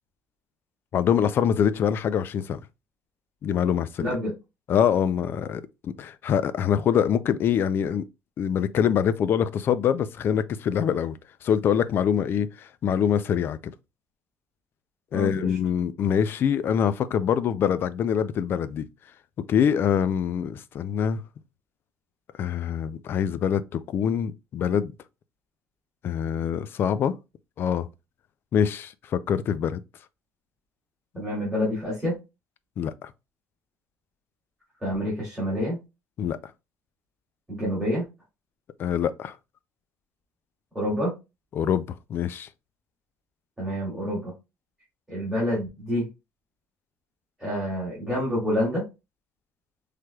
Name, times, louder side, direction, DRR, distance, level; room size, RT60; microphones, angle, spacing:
voice 1, 0.9-2.6 3.4-4.2 4.7-8.0 8.4-13.6 15.1-18.9 19.5-21.2 22.4-24.9 26.0-27.1 27.6-27.9 28.5-29.8 32.8-33.1 36.2-36.4 38.8-39.4 41.5-41.8 42.1-42.5, left 8 dB, 45° left, 0.4 m, -24 dB
voice 2, 4.0-4.3 15.1-15.6 31.1-32.2 34.8-35.8 37.5-38.0 40.7-41.1 43.6-44.3 45.1-46.1 47.4-48.9, equal, 10° right, 2.6 m, -27 dB
5.8 x 3.3 x 2.3 m
cardioid pair, 135°, 5 cm